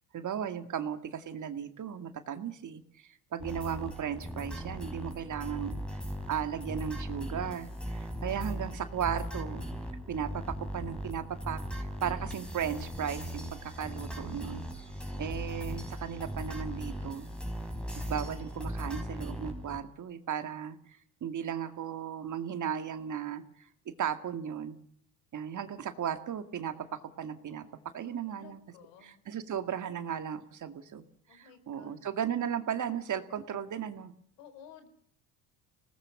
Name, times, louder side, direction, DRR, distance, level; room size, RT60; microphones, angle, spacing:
voice 1, 0.1-6.0 6.3-9.7 10.1-14.6 15.2-17.3 18.1-23.7 24.0-24.8 25.3-27.7 27.9-28.6 29.0-31.0 31.3-34.1, right 8 dB, 45° right, 9 dB, 2.2 m, -36 dB
sound 1, 3.4-19.8, equal, ahead, 5.2 m, -38 dB
voice 2, 14.9-15.5 28.3-29.2 31.3-32.0 34.4-34.9, left 8 dB, 75° left, 9 dB, 4.4 m, -55 dB
25.0 x 19.0 x 7.3 m, 0.62 s
supercardioid pair, 90°, 42 cm